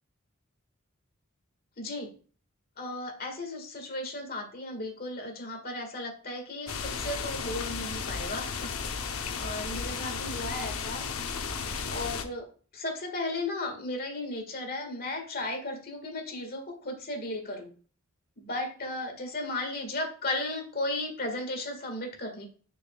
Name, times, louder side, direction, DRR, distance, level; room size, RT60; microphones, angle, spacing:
voice 1, 1.8-2.1 2.8-8.7 9.4-11.1 11.9-12.5 12.7-17.7 18.4-22.5, left 2 dB, 45° left, 4 dB, 1.7 m, -35 dB
sound 1, 6.7-12.2, left 5 dB, 85° left, 0.7 m, -34 dB
6.9 x 6.5 x 2.3 m, 0.40 s
head